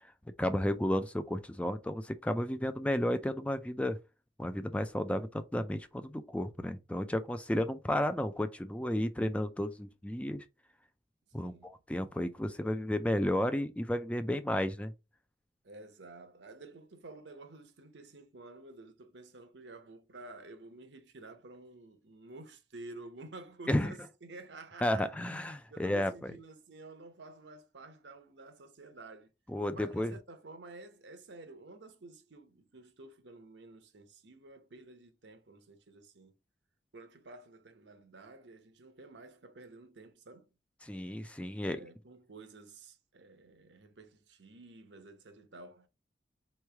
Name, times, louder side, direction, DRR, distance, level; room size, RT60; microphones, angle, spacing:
voice 1, 0.4-4.0 4.4-10.4 11.3-14.9 23.7-23.9 24.8-26.3 29.5-30.1 40.8-41.8, left 1 dB, 5° left, 0.3 m, -32 dB
voice 2, 11.4-11.7 15.6-25.1 25.7-29.3 29.7-36.3 36.9-40.5 41.7-45.9, right 2 dB, 75° right, 0.8 m, -51 dB
4.4 x 3.1 x 3.3 m
head